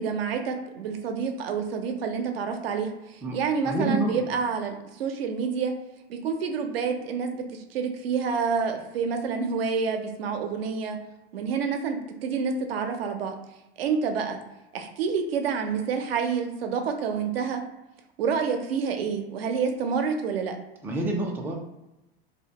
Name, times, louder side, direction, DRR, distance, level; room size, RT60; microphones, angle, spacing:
voice 1, 0.0-5.7 6.1-11.0 11.3-13.4 13.8-14.4 14.7-17.6 18.2-20.6, right 5 dB, 80° right, 4 dB, 0.5 m, -28 dB
voice 2, 3.2-4.1 20.8-21.5, right 2 dB, 5° right, 0 dB, 0.3 m, -28 dB
2.2 x 2.1 x 2.8 m, 0.97 s
hypercardioid pair, 100°, 29 cm